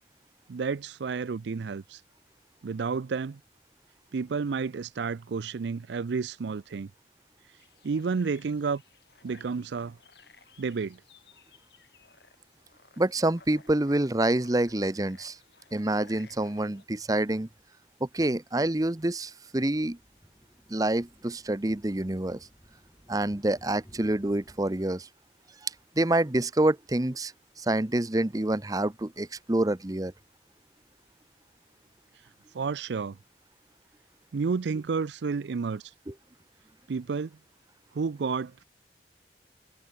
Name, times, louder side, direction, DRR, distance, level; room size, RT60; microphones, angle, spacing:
voice 1, 0.5-2.0 2.6-3.4 4.1-6.9 7.8-8.8 9.2-10.0 10.6-11.0 32.5-33.2 34.3-35.8 36.9-37.3 37.9-38.6, right 5 dB, 75° right, 0.4 m, -31 dB
sound 1, 7.6-16.8, left 4 dB, 65° left, 6.4 m, -57 dB
voice 2, 13.0-15.4 15.7-17.5 18.0-20.0 20.7-22.4 23.1-25.1 25.6-27.3 27.6-30.1 36.1-36.2, right 1 dB, 20° right, 0.8 m, -27 dB
sound 2, 19.6-25.0, equal, 15° left, 5.5 m, -58 dB
head